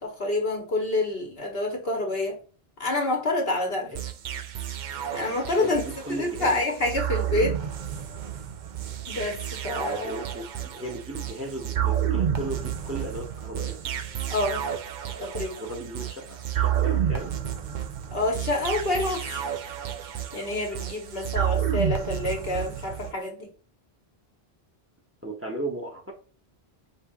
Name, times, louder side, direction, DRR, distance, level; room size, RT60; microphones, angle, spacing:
voice 1, 0.0-2.4 2.8-3.9 5.1-5.8 6.1-7.6 9.1-10.2 14.3-14.6 15.2-15.6 18.1-19.4 20.3-23.5, left 2 dB, 70° left, 1.6 m, -27 dB
sound 1, 3.9-23.1, right 10 dB, 55° right, 0.7 m, -30 dB
voice 2, 5.6-6.6 10.0-13.8 15.6-17.3 25.2-26.0, right 1 dB, 15° right, 1.1 m, -35 dB
5.4 x 3.3 x 3.0 m
omnidirectional pair, 1.0 m